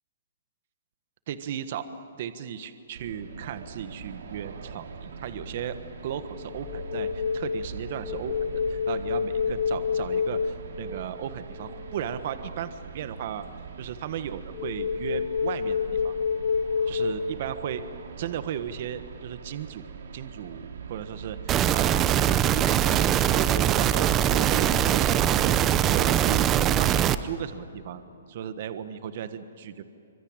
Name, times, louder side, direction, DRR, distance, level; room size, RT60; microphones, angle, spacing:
voice 1, 1.3-1.8 2.2-5.8 6.0-7.1 7.3-8.3 8.7-13.4 13.8-15.8 16.0-16.1 16.9-17.8 18.2-19.9 20.1-26.4 26.8-28.0 28.3-29.8, right 9 dB, 45° right, 11 dB, 1.3 m, -35 dB
sound 1, 2.9-21.6, right 6 dB, 70° right, 2.6 m, -42 dB
sound 2, 5.3-5.6 6.1-12.0 14.5-17.1, left 6 dB, 25° left, 3.6 m, -29 dB
sound 3, 21.5-27.2, right 10 dB, 20° right, 0.7 m, -22 dB
26.0 x 25.0 x 8.9 m, 2.6 s
hypercardioid pair, 160°, 0 cm